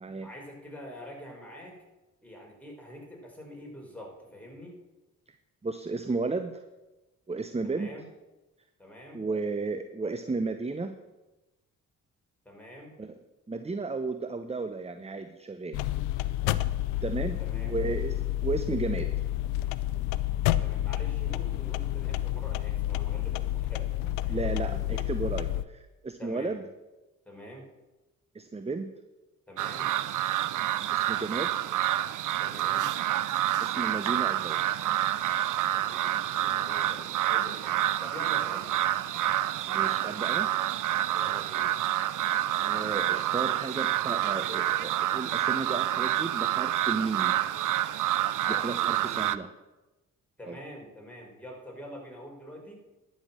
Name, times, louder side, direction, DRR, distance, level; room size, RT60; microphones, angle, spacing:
voice 1, 0.2-1.8 2.2-4.8 7.6-8.0 8.8-9.2 12.4-12.9 17.4-17.7 20.6-24.4 24.7-25.0 26.2-26.6 27.2-27.7 29.5-29.9 32.4-32.9 35.7-38.7 41.1-41.7 48.4-49.4 50.4-52.7, equal, 5° left, -1 dB, 4.9 m, -45 dB
voice 2, 5.6-6.6 7.3-7.9 9.1-10.9 13.0-13.2 13.5-15.8 17.0-19.1 24.3-26.6 28.3-28.9 30.9-31.5 33.6-34.6 39.7-40.5 42.6-47.4 48.5-49.5 50.5-50.6, right 3 dB, 15° right, 9 dB, 0.8 m, -33 dB
sound 1, 15.7-25.6, left 14 dB, 85° left, 0.5 m, -30 dB
sound 2, 29.6-49.4, right 13 dB, 60° right, 0.6 m, -28 dB
11.5 x 6.5 x 7.5 m, 1.1 s
hypercardioid pair, 45°, 36 cm